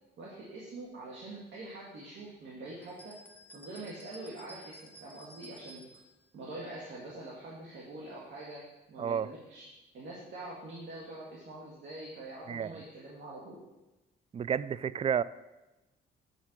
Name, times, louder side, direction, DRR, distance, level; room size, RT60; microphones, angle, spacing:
voice 1, 0.2-3.2 3.5-5.8 6.3-9.7 9.9-13.6, right 2 dB, 65° right, -5 dB, 1.8 m, -45 dB
sound 1, 2.8-6.1, right 2 dB, 10° left, 1.0 m, -53 dB
voice 2, 9.0-9.3 12.5-12.8 14.3-15.2, right 8 dB, 30° right, 17 dB, 0.3 m, -31 dB
7.5 x 5.6 x 5.9 m, 1.0 s
cardioid pair, 90°, 20 cm